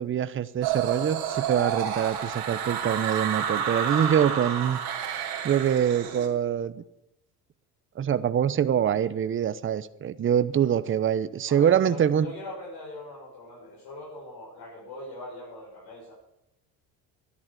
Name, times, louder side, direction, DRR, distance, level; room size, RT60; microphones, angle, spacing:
voice 1, 0.0-4.8 5.4-6.8 8.0-12.3, right 9 dB, 30° right, 13 dB, 0.8 m, -24 dB
sound 1, 0.6-6.3, right 8 dB, 70° right, 3.3 m, -30 dB
voice 2, 11.5-16.1, left 2 dB, 80° left, -6 dB, 6.6 m, -41 dB
13.0 x 11.0 x 8.5 m, 0.83 s
cardioid pair, 100°, 39 cm